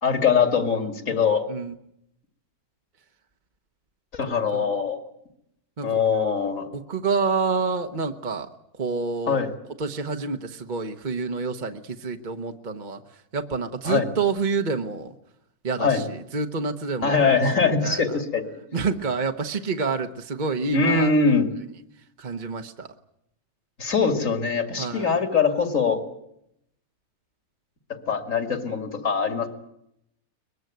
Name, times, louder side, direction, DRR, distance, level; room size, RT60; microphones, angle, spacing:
voice 1, 0.0-1.5 4.1-5.0 5.8-6.7 9.3-9.5 13.8-14.1 15.8-16.0 17.0-18.4 20.7-21.5 23.8-26.0 28.1-29.5, left 5 dB, 60° left, 7 dB, 3.0 m, -22 dB
voice 2, 6.7-8.5 8.7-9.4 9.8-15.1 15.6-18.2 18.7-21.1 22.2-22.9 24.8-25.1, right 4 dB, 35° right, 6 dB, 1.2 m, -28 dB
23.0 x 21.0 x 9.3 m, 0.78 s
omnidirectional pair, 1.6 m